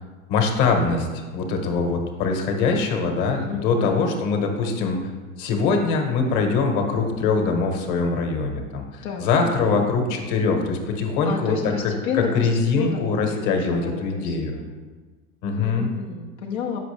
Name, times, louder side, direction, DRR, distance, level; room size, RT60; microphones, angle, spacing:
voice 1, 0.3-5.0 5.4-11.7 12.3-14.6 15.4-15.9, left 4 dB, 50° left, 3 dB, 1.3 m, -23 dB
voice 2, 3.5-4.1 9.0-9.3 9.6-9.8 11.2-14.7 15.6-16.8, left 6 dB, 80° left, -1 dB, 0.9 m, -31 dB
7.7 x 5.3 x 3.4 m, 1.4 s
hypercardioid pair, 115°, 39 cm